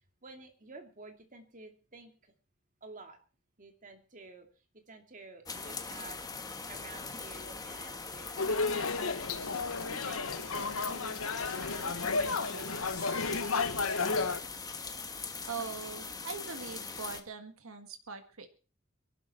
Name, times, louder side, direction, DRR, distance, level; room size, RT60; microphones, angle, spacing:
voice 1, 0.2-2.3 2.8-3.2 3.6-4.5 4.7-9.0 9.9-10.2 10.6-14.1, right 3 dB, 40° right, 5 dB, 2.6 m, -51 dB
sound 1, 5.5-17.2, left 4 dB, 20° left, 1.4 m, -42 dB
sound 2, 8.4-14.4, left 4 dB, 80° left, 1.3 m, -32 dB
voice 2, 15.4-18.5, right 5 dB, 75° right, 7 dB, 1.7 m, -42 dB
23.0 x 12.0 x 4.4 m, 0.36 s
head